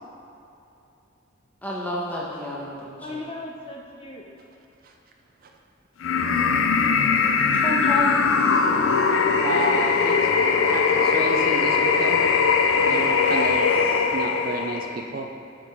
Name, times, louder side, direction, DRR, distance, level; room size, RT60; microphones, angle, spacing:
voice 1, 1.6-3.2 7.5-8.1 13.2-14.0, left 1 dB, 10° left, -5 dB, 1.0 m, -31 dB
voice 2, 3.0-4.2 8.6-9.4, left 2 dB, 30° left, -1 dB, 0.5 m, -39 dB
sound 1, 6.0-15.0, left 5 dB, 85° left, 0.4 m, -21 dB
voice 3, 9.4-10.2 10.7-10.8 11.1-12.2 12.9-13.7 14.1-15.3, right 3 dB, 45° right, 3 dB, 0.4 m, -30 dB
8.1 x 4.8 x 3.6 m, 2.6 s
head